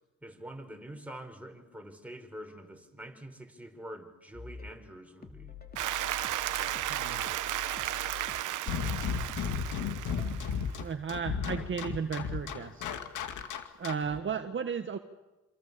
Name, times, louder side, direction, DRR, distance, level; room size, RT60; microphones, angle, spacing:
voice 1, 0.2-5.5, right 1 dB, 5° right, 4 dB, 4.9 m, -46 dB
sound 1, 4.3-10.6, left 6 dB, 30° left, 2.6 m, -46 dB
Applause, 5.8-10.8, right 14 dB, 85° right, 1.1 m, -34 dB
voice 2, 6.9-7.2 10.8-12.8 13.8-15.0, right 6 dB, 40° right, 6 dB, 1.6 m, -34 dB
sound 2, 8.7-14.2, left 6 dB, 80° left, 2.5 m, -34 dB
28.0 x 27.5 x 7.0 m, 1.1 s
cardioid pair, 90°, 30 cm